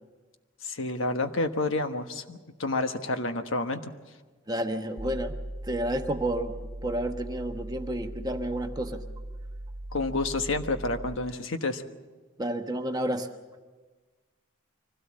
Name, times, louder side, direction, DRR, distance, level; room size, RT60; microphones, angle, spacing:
voice 1, 0.6-3.9 9.9-11.8, left 2 dB, 75° left, 7 dB, 1.3 m, -29 dB
voice 2, 4.5-5.3 5.7-6.5 6.8-9.0 12.4-13.3, right 1 dB, 20° right, 5 dB, 1.1 m, -30 dB
sound 1, 5.0-11.2, right 1 dB, 65° right, 1.3 m, -39 dB
24.5 x 17.0 x 7.5 m, 1.3 s
head